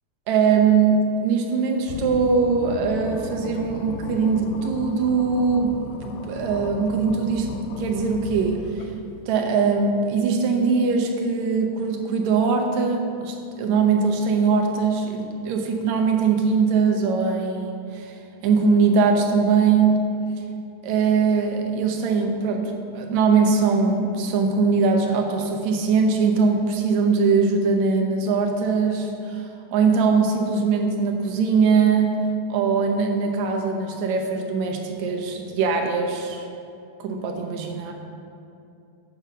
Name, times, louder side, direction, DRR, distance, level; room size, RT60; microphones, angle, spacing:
voice 1, 0.3-5.8 6.3-7.5 7.8-8.8 9.3-18.2 18.4-20.1 20.8-32.2 32.5-36.5 37.0-37.9, right 5 dB, 75° right, 2 dB, 2.1 m, -21 dB
sound 1, 1.9-9.1, left 5 dB, 80° left, 1.8 m, -36 dB
8.7 x 6.7 x 5.0 m, 2.7 s
omnidirectional pair, 3.5 m